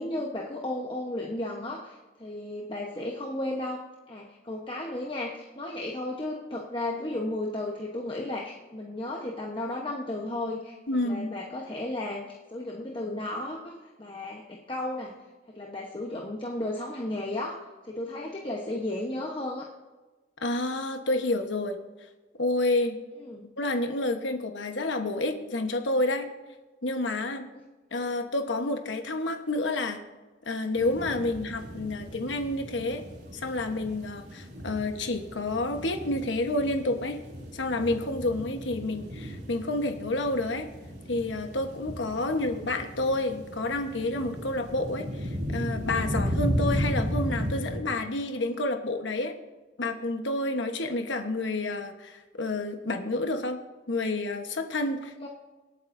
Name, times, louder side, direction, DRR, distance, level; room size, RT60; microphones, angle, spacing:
voice 1, 0.0-3.8 4.1-10.8 11.0-15.2 15.5-19.7 23.2-23.5 42.1-42.4 55.2-55.3, left 1 dB, 30° left, -1 dB, 1.0 m, -34 dB
voice 2, 10.9-11.3 20.4-21.8 22.4-23.0 23.6-26.3 26.8-27.5 27.9-30.0 30.4-33.0 33.3-37.2 37.5-40.6 41.1-49.3 49.8-53.6 53.9-55.3, left 2 dB, 90° left, 6 dB, 1.2 m, -29 dB
sound 1, 30.7-47.8, equal, 65° right, 2.9 m, -35 dB
26.0 x 8.9 x 2.7 m, 1.2 s
head